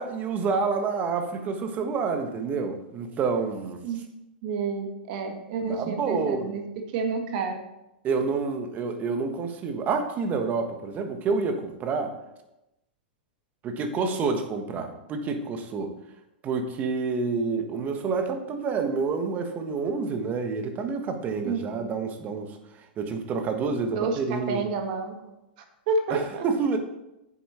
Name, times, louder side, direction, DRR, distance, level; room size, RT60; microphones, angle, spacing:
voice 1, 0.0-3.8 5.6-6.5 8.0-12.1 13.6-15.9 16.4-22.6 23.0-24.6 26.1-26.8, right 4 dB, 30° right, 6 dB, 1.4 m, -28 dB
voice 2, 4.4-6.6 6.9-7.6 21.4-21.9 23.9-25.3 25.9-26.5, right 4 dB, 55° right, 4 dB, 1.7 m, -29 dB
9.2 x 7.2 x 4.4 m, 0.91 s
hypercardioid pair, 115°, 5 cm